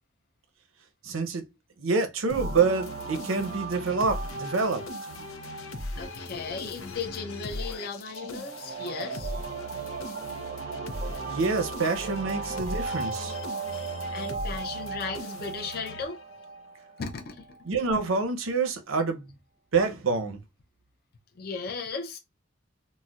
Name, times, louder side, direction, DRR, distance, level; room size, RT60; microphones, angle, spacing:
voice 1, 1.0-1.5 1.8-4.9 11.3-13.3 17.7-19.3 19.7-20.4, right 4 dB, 90° right, 0.7 m, -27 dB
sound 1, 2.3-16.6, left 2 dB, 90° left, 0.6 m, -39 dB
sound 2, 2.3-17.6, right 5 dB, 50° right, 0.4 m, -38 dB
voice 2, 6.0-9.3 13.8-13.9 14.1-16.2 17.0-17.5 21.4-22.2, left 4 dB, 50° left, 0.5 m, -36 dB
4.1 x 2.1 x 2.4 m
head